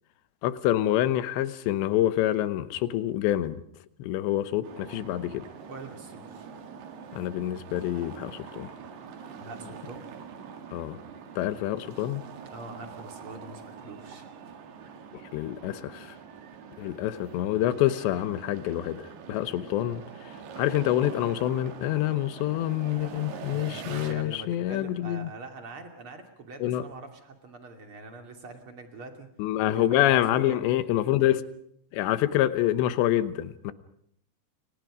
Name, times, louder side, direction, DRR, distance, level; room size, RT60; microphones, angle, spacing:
voice 1, 0.4-3.6 4.0-5.5 7.2-8.7 10.7-11.0 11.4-12.2 15.3-16.1 16.8-20.0 20.6-25.3 26.6-26.8 29.4-31.4 31.9-33.7, left 13 dB, 80° left, 13 dB, 3.2 m, -26 dB
sound 1, 4.6-24.1, right 6 dB, 65° right, 3.8 m, -44 dB
voice 2, 5.7-6.5 9.3-10.2 12.4-14.3 23.5-29.3 29.6-30.6, right 2 dB, 35° right, 5 dB, 2.8 m, -43 dB
29.5 x 25.0 x 5.1 m, 0.69 s
omnidirectional pair, 5.2 m